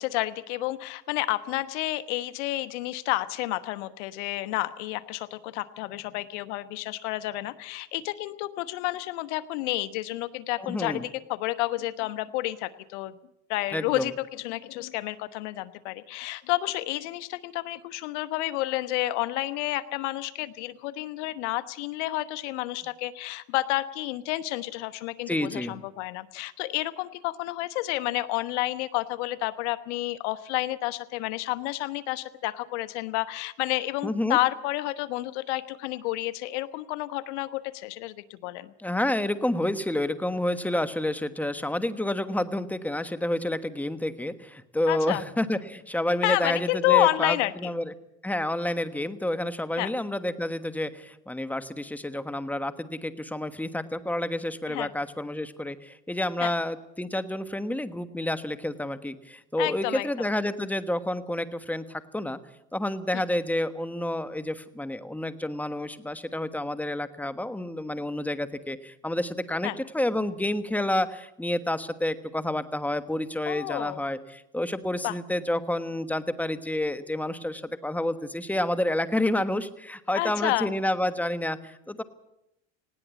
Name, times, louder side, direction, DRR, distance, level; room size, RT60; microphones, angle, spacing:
voice 1, 0.0-13.2 13.5-38.7 44.9-45.2 46.2-47.7 49.8-49.9 54.7-54.9 56.4-56.5 59.6-60.1 69.6-69.8 73.5-74.0 75.0-75.1 80.1-80.7, left 17 dB, 80° left, 14 dB, 1.2 m, -30 dB
voice 2, 10.6-11.0 13.7-14.1 25.3-25.8 34.0-34.4 38.8-47.9 48.2-62.4 62.7-82.0, left 1 dB, 5° left, 12 dB, 1.3 m, -29 dB
19.5 x 17.0 x 8.3 m, 0.84 s
supercardioid pair, 105°, 35 cm